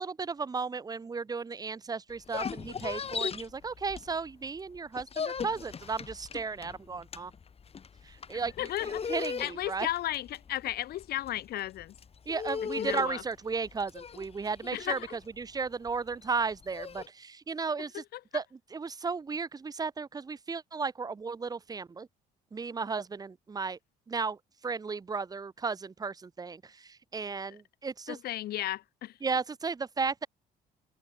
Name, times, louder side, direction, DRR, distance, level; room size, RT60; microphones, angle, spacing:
voice 1, 0.0-7.3 8.0-9.9 12.3-18.0 18.3-18.4 18.7-22.1 22.5-23.8 24.1-28.2 29.2-30.3, right 4 dB, 20° right, 1.0 m, -35 dB
sound 1, 2.1-4.4 4.7-17.1, left 6 dB, 35° left, 6.5 m, -38 dB
voice 2, 8.6-9.1 9.4-11.9 12.8-13.2 14.7-15.1 18.1-18.2 28.1-29.2, left 14 dB, 70° left, 1.5 m, -34 dB
cardioid pair, 110°, 17 cm